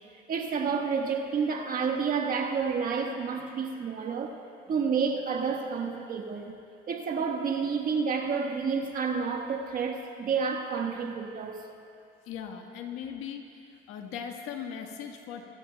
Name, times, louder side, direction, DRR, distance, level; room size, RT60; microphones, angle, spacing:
voice 1, 0.3-4.3 4.7-6.5 6.9-11.6, right 5 dB, 45° right, 1.4 m, -29 dB
voice 2, 12.3-13.4 13.9-15.4, left 8 dB, 90° left, 1.5 m, -38 dB
25.0 x 17.5 x 2.3 m
cardioid pair, 130°, 20 cm